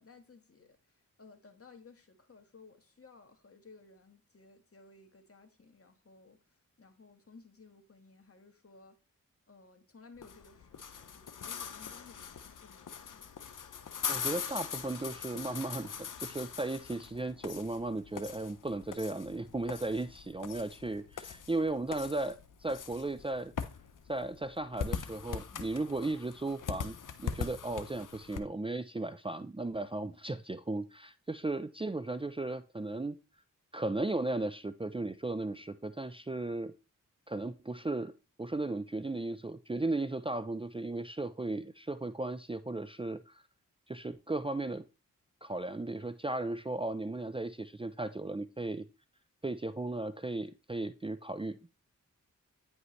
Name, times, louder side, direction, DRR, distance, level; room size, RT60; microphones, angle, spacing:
voice 1, 0.0-9.0 9.5-13.3, left 4 dB, 45° left, 1.7 m, -58 dB
sound 1, 10.2-28.4, left 7 dB, 70° left, 0.9 m, -42 dB
voice 2, 14.1-23.5 24.1-33.2 33.7-36.7 37.3-38.1 38.4-43.4 43.9-44.8 45.4-48.8 49.4-51.7, right 2 dB, 15° right, 0.6 m, -36 dB
9.5 x 5.1 x 3.2 m
cardioid pair, 45°, 33 cm